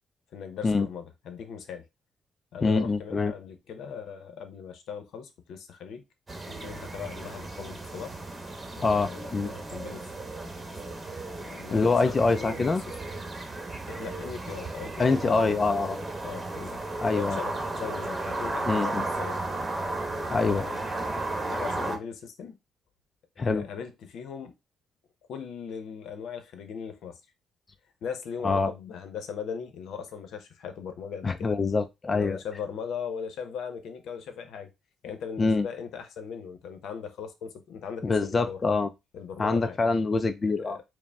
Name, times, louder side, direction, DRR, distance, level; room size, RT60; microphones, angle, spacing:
voice 1, 0.3-1.8 2.5-6.0 6.5-8.1 8.7-10.1 10.4-10.6 10.9-11.0 11.4-12.9 13.9-16.8 17.1-19.4 20.3-20.8 21.2-22.6 23.4-24.6 25.3-27.2 28.0-31.5 32.1-34.7 35.0-38.6 39.1-39.8 40.6-40.8, left 7 dB, 75° left, 0.7 m, -39 dB
voice 2, 2.6-3.3 8.8-9.5 11.7-12.8 15.0-16.0 17.0-17.4 18.7-19.0 20.3-20.7 23.4-23.7 28.4-28.7 31.2-32.4 35.4-35.7 38.0-38.9 39.4-40.8, left 4 dB, 30° left, 0.3 m, -25 dB
sound 1, 6.3-22.0, right 2 dB, 20° right, 1.0 m, -34 dB
4.8 x 2.1 x 3.4 m
cardioid pair, 90°, 0 cm